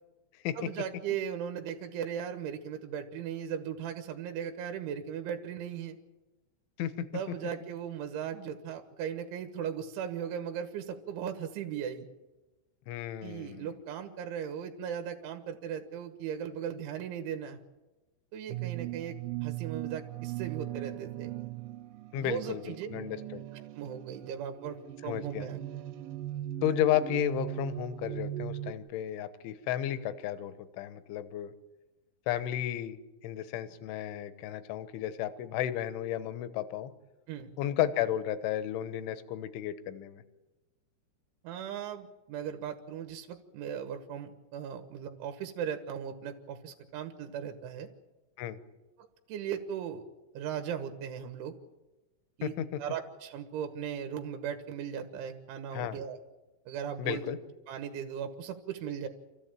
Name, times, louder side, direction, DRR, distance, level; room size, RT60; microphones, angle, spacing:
voice 1, 0.6-6.0 7.1-12.1 13.2-17.6 18.3-21.3 22.2-22.9 23.5-25.6 37.3-37.5 41.4-47.9 49.0-50.0 50.4-51.6 52.4-56.2 56.7-57.3 57.7-59.1, right 8 dB, 75° right, 6 dB, 3.6 m, -38 dB
voice 2, 12.9-13.7 22.1-23.4 25.0-25.5 26.6-31.5 32.3-33.0 33.2-36.9 37.6-40.2 48.4-48.6 52.4-52.7 55.7-56.0 57.0-57.4, left 11 dB, 75° left, 12 dB, 3.4 m, -33 dB
sound 1, 18.5-28.7, right 14 dB, 90° right, 3.8 m, -39 dB
28.0 x 14.5 x 9.0 m, 1.1 s
omnidirectional pair, 5.8 m